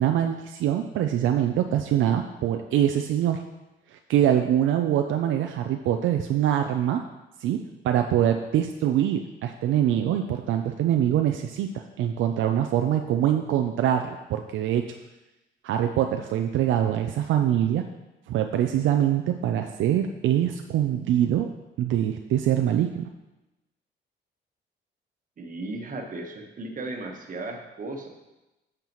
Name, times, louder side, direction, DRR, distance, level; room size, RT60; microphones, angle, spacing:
voice 1, 0.0-3.4 3.9-7.0 7.4-7.6 7.8-14.8 15.6-17.8 18.3-21.5 21.8-23.1, right 10 dB, 80° right, 5 dB, 0.5 m, -24 dB
voice 2, 25.4-28.1, right 2 dB, 45° right, 3 dB, 1.3 m, -35 dB
9.2 x 6.6 x 3.1 m, 1.0 s
cardioid pair, 90°, 20 cm